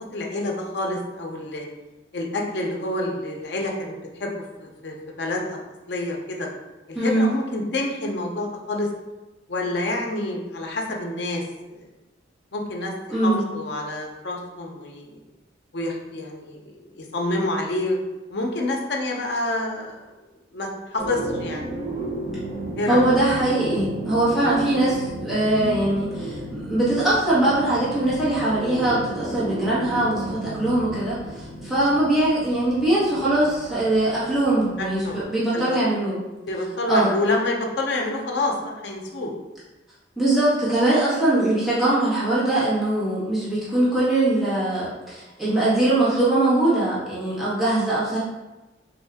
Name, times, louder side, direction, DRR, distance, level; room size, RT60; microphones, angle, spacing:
voice 1, 0.1-1.6 2.1-4.3 4.6-5.6 5.9-6.5 6.9-8.9 9.5-11.9 12.5-15.2 15.7-18.0 18.3-20.1 20.5-21.7 22.8-23.0 29.2-29.5 34.8-35.8 36.5-39.3, left 2 dB, 65° left, 0 dB, 0.6 m, -28 dB
voice 2, 6.9-7.3 13.1-13.4 22.9-36.2 36.9-37.1 40.2-48.2, right 1 dB, ahead, -11 dB, 1.2 m, -22 dB
sound 1, 21.0-35.2, right 1 dB, 25° right, 1.1 m, -33 dB
3.7 x 2.7 x 3.4 m, 1.1 s
head